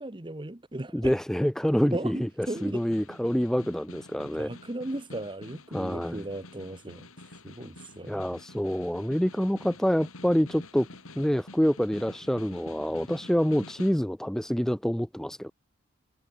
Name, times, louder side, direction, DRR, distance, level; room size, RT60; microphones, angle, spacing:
voice 1, 0.0-1.1 1.9-2.8 4.2-7.1 7.4-8.2, right 1 dB, 20° right, 1.2 m, -36 dB
voice 2, 0.9-4.5 5.7-6.3 8.1-10.9 11.2-15.5, equal, ahead, 0.4 m, -27 dB
Snare drum, 2.2-14.1, left 2 dB, 80° left, 6.1 m, -48 dB
head